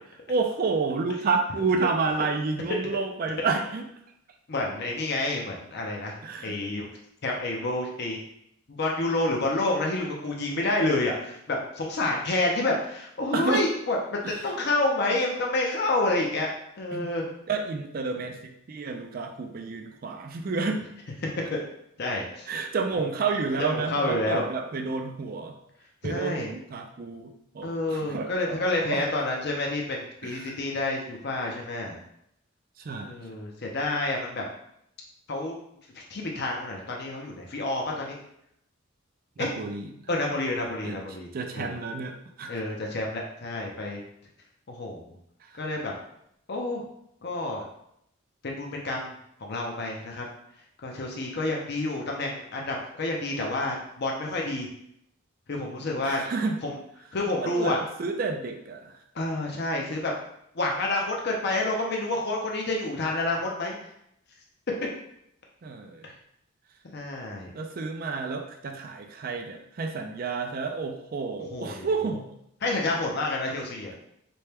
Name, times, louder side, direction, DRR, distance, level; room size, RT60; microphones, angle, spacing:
voice 1, 0.3-3.9 6.2-6.6 13.3-13.7 14.2-14.4 16.9-17.1 17.5-20.8 22.5-25.6 26.0-29.0 30.2-30.5 32.8-33.1 39.4-39.9 40.8-41.0 41.3-42.5 45.4-45.6 56.0-56.6 57.4-59.0 65.6-66.1 67.5-72.3, right 4 dB, 45° right, 5 dB, 0.3 m, -30 dB
voice 2, 4.5-6.1 6.4-6.9 7.2-8.2 8.7-16.5 16.8-17.3 21.5-21.6 22.0-22.5 23.6-24.4 26.1-26.5 27.6-32.0 33.0-34.4 35.3-35.5 35.9-38.2 39.4-39.5 40.1-41.3 41.5-41.7 42.5-44.0 44.7-45.1 45.6-45.9 46.5-46.8 47.2-47.6 48.4-49.1 49.4-50.3 50.8-54.7 55.5-56.2 56.6-56.7 57.1-57.8 59.2-60.1 60.5-63.8 66.0-66.1 66.9-67.5 71.5-71.9 72.6-74.0, left 2 dB, 50° left, -1 dB, 0.6 m, -29 dB
4.3 x 2.2 x 3.4 m, 0.74 s
head